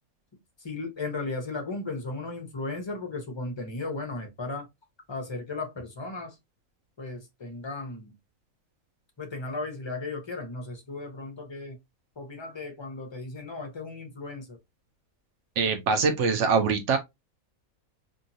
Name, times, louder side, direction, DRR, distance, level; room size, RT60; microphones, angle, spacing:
voice 1, 0.6-4.7 5.1-6.4 7.0-8.1 9.2-11.8 12.2-14.6, left 3 dB, 40° left, 0.4 m, -35 dB
voice 2, 15.6-17.0, right 5 dB, 65° right, 0.8 m, -23 dB
2.8 x 2.6 x 2.6 m
omnidirectional pair, 1.5 m